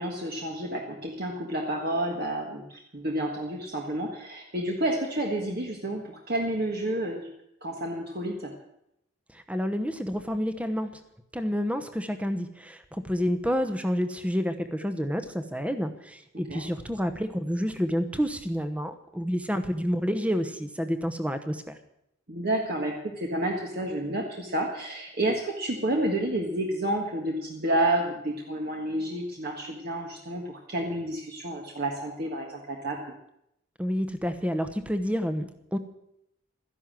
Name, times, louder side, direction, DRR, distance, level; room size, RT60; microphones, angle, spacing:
voice 1, 0.0-7.3 7.6-8.5 16.5-16.6 22.3-33.0, right 1 dB, 45° right, 0 dB, 1.6 m, -30 dB
voice 2, 9.3-10.9 11.3-21.8 33.8-35.8, equal, 5° right, 9 dB, 1.0 m, -29 dB
13.5 x 11.0 x 7.6 m, 0.78 s
head